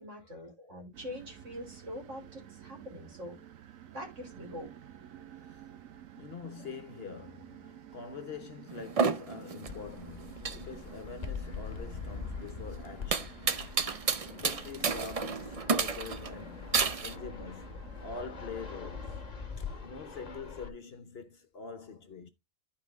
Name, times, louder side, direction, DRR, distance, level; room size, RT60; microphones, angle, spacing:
voice 1, 0.0-3.4 3.9-4.7, left 1 dB, 60° right, 3.6 m, -44 dB
sound 1, 0.9-19.3, right 10 dB, 80° right, 1.2 m, -52 dB
voice 2, 6.2-13.4 13.9-16.8 17.0-19.2 19.6-22.3, left 5 dB, 50° left, 1.1 m, -45 dB
sound 2, 8.7-17.2, right 5 dB, 40° right, 0.5 m, -32 dB
Fixed-wing aircraft airplane, 9.7-20.7, left 5 dB, 30° left, 1.2 m, -43 dB
11.5 x 4.7 x 3.5 m
omnidirectional pair, 1.4 m